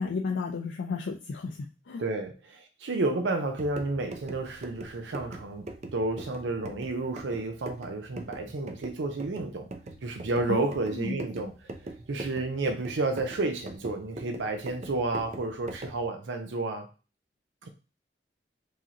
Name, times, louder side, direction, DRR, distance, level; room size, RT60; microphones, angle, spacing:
voice 1, 0.0-2.0 10.5-11.2, left 4 dB, 90° left, 3 dB, 0.5 m, -33 dB
voice 2, 2.0-5.7 5.9-9.7 10.0-16.9 17.6-17.7, right 2 dB, 85° right, 4 dB, 0.6 m, -31 dB
sound 1, 3.4-16.1, right 2 dB, 40° right, 0.5 m, -43 dB
4.8 x 2.8 x 2.8 m, 0.32 s
head